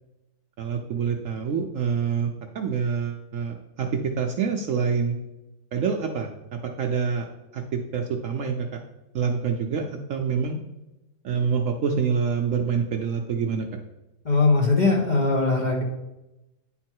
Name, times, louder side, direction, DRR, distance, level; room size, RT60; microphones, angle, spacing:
voice 1, 0.6-5.2 5.7-8.8 9.1-10.6 11.2-13.8, right 6 dB, 65° right, 3 dB, 0.8 m, -26 dB
voice 2, 14.2-15.8, left 3 dB, 35° left, -1 dB, 0.9 m, -20 dB
9.4 x 3.9 x 4.5 m, 0.99 s
omnidirectional pair, 1.7 m